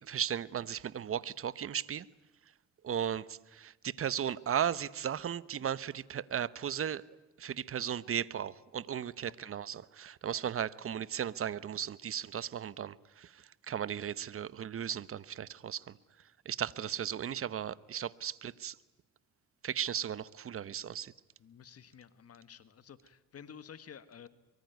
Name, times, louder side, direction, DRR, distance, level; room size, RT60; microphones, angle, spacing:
voice 1, 0.1-2.0 2.8-7.0 7.4-16.0 16.4-18.7 19.6-21.1, right 9 dB, 45° right, 1.1 m, -36 dB
voice 2, 9.2-9.5 21.4-24.3, left 7 dB, 50° left, 1.7 m, -52 dB
24.5 x 23.5 x 9.4 m
cardioid pair, 90°, 30 cm